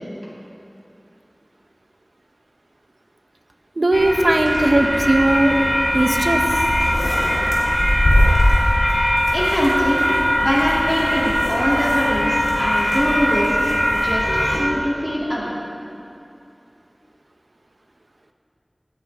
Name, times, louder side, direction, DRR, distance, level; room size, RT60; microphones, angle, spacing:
voice 1, 3.8-5.6 5.9-6.4, right 1 dB, 90° right, 4 dB, 1.0 m, -18 dB
sound 1, 3.9-14.6, equal, 85° left, 3.7 m, -19 dB
voice 2, 9.3-10.0 10.4-15.5, equal, 10° left, -6 dB, 3.0 m, -23 dB
19.0 x 14.5 x 3.7 m, 2.7 s
wide cardioid pair, 40°, 0 cm